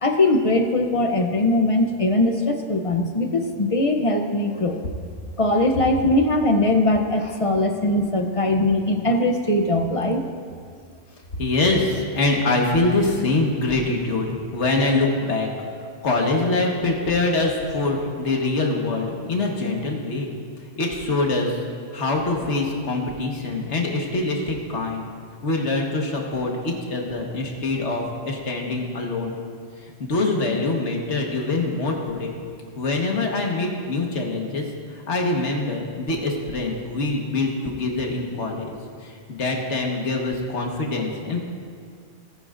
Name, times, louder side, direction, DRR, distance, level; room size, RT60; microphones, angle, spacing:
voice 1, 0.0-4.8 5.4-10.2, left 2 dB, 40° left, 5 dB, 0.5 m, -21 dB
voice 2, 11.4-15.5 16.0-20.3 20.8-21.5 21.9-25.1 25.4-29.4 30.0-32.4 32.8-34.7 35.1-38.7 39.0-41.4, left 2 dB, 60° left, 0 dB, 1.7 m, -24 dB
19.0 x 9.9 x 2.5 m, 2.1 s
omnidirectional pair, 1.3 m